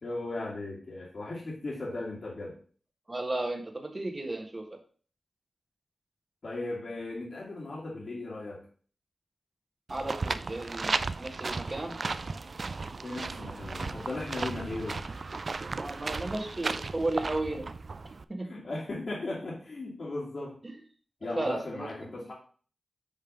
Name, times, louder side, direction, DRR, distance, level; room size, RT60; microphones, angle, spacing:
voice 1, 0.0-2.6 6.4-8.7 13.0-15.0 18.4-20.6 21.2-22.3, left 2 dB, 60° left, -5 dB, 1.8 m, -37 dB
voice 2, 3.1-4.8 9.9-12.0 15.8-17.7 18.3-18.5 20.6-20.7 21.4-21.9, right 2 dB, 30° right, 3 dB, 1.6 m, -34 dB
sound 1, 9.9-18.2, right 3 dB, 55° right, 0.3 m, -35 dB
5.4 x 3.4 x 5.2 m, 0.43 s
cardioid pair, 60°, 0 cm